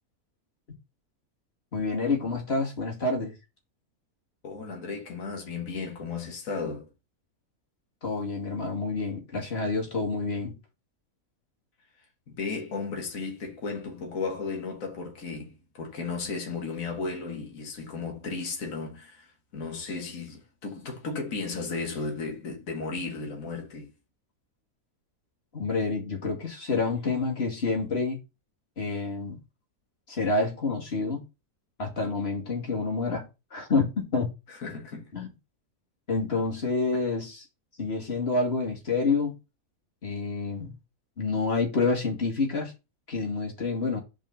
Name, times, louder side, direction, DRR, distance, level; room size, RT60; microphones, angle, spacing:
voice 1, 1.7-3.3 8.0-10.6 25.5-28.2 28.8-29.4 30.1-31.2 31.8-33.2 33.5-34.3 35.1-35.3 36.1-37.4 37.8-39.3 40.0-40.7 41.2-42.7 43.1-44.0, left 3 dB, 45° left, 2.4 m, -28 dB
voice 2, 4.4-6.9 12.3-23.9 34.5-35.1, left 4 dB, 65° left, 2.0 m, -35 dB
5.3 x 5.1 x 6.5 m
omnidirectional pair, 1.6 m